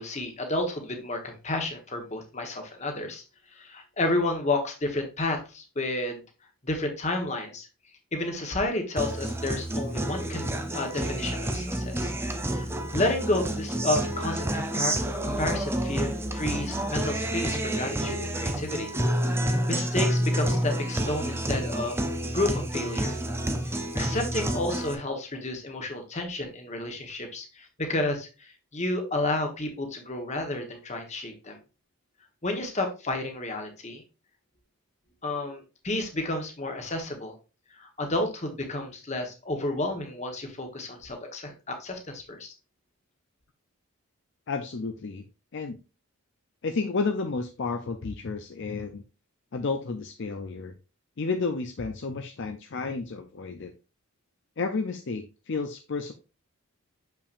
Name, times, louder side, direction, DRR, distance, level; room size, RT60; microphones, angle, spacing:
voice 1, 0.0-3.2 3.5-6.2 6.6-7.7 8.1-12.1 12.5-18.9 19.4-22.0 22.3-23.1 23.9-31.6 32.4-34.0 35.2-37.4 37.7-42.5, left 2 dB, 30° left, 4 dB, 1.2 m, -31 dB
Guitar, 9.0-24.9, right 1 dB, 10° right, 0.5 m, -29 dB
voice 2, 44.5-45.2 45.5-45.8 46.6-49.0 49.5-50.7 51.2-53.7 54.6-56.1, left 4 dB, 55° left, 6 dB, 0.5 m, -31 dB
6.8 x 5.7 x 2.5 m, 0.31 s
head